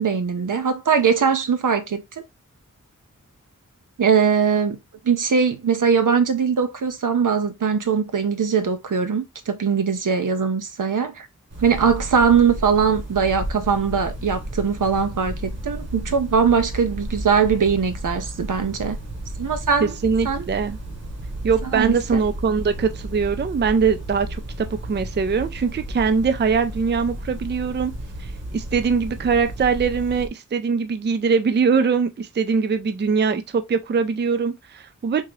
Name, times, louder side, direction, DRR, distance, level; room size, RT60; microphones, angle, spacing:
voice 1, 0.0-2.2 4.0-4.8 5.0-11.3 11.6-19.0 19.4-19.9 20.2-20.5 21.6-22.2, right 6 dB, 75° right, 0.7 m, -21 dB
sound 1, 11.5-30.3, right 1 dB, 55° right, 1.2 m, -33 dB
voice 2, 19.8-20.8 21.4-27.9 28.2-35.2, right 5 dB, 35° right, 0.4 m, -22 dB
3.7 x 2.8 x 3.0 m
wide cardioid pair, 80°, 32 cm